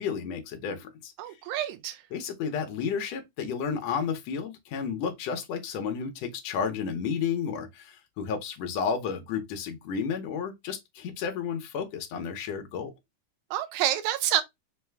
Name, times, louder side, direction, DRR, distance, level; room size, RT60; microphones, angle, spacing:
voice 1, 0.0-1.4 2.1-12.9, left 6 dB, 70° left, 1.8 m, -32 dB
voice 2, 1.2-2.0 13.5-14.4, right 12 dB, 80° right, 2.0 m, -28 dB
5.6 x 2.2 x 3.3 m
omnidirectional pair, 3.6 m